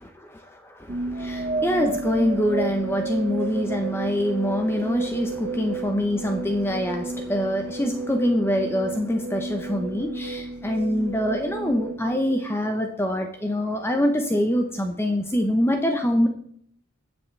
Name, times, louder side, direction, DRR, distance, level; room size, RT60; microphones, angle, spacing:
voice 1, 0.3-16.3, equal, 10° left, 5 dB, 0.8 m, -25 dB
sound 1, 0.9-12.9, right 3 dB, 40° right, 0.6 m, -32 dB
19.0 x 7.0 x 3.3 m, 0.66 s
head